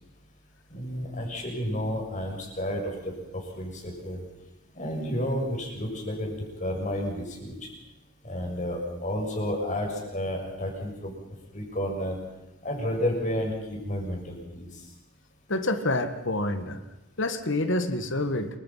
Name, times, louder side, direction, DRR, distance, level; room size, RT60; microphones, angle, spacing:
voice 1, 0.7-4.2 4.7-7.7 8.2-11.1 11.5-12.2 12.6-14.8, equal, 35° left, 1 dB, 6.8 m, -31 dB
voice 2, 15.5-16.8 17.2-18.5, left 2 dB, 55° left, 9 dB, 1.8 m, -27 dB
27.5 x 24.0 x 5.9 m, 0.99 s
head